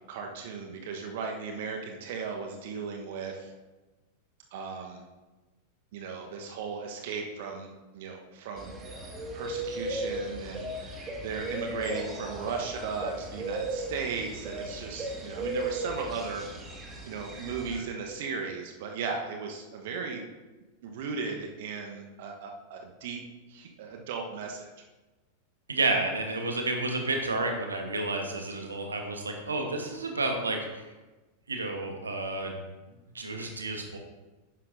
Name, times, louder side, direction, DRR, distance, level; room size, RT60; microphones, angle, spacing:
voice 1, 0.1-3.5 4.5-5.0 5.9-8.7 9.3-16.5 17.0-20.2 20.8-23.2 23.5-24.7, right 5 dB, 55° right, 2 dB, 1.1 m, -36 dB
sound 1, 8.6-17.8, right 1 dB, 20° right, 2.0 m, -36 dB
voice 2, 25.7-30.8 31.5-32.6 33.1-34.0, right 2 dB, 75° right, 4 dB, 1.2 m, -30 dB
12.0 x 9.9 x 2.7 m, 1.2 s
figure-of-eight pair, 90°, 0 cm